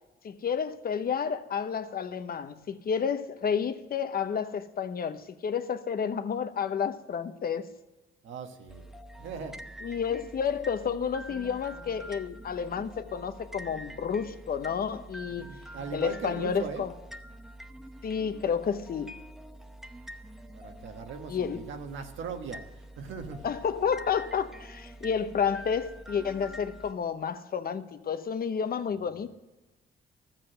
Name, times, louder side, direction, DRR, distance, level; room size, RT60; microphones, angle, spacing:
voice 1, 0.2-7.7 9.8-15.5 15.9-16.9 18.0-19.1 21.3-21.6 23.4-29.3, left 7 dB, 50° left, 0.9 m, -30 dB
voice 2, 8.2-8.9 9.2-9.6 15.4-16.8 20.5-23.5, right 6 dB, 75° right, 1.5 m, -39 dB
sound 1, 8.7-26.9, right 1 dB, ahead, 0.8 m, -46 dB
13.5 x 7.5 x 7.9 m
cardioid pair, 90°, 20 cm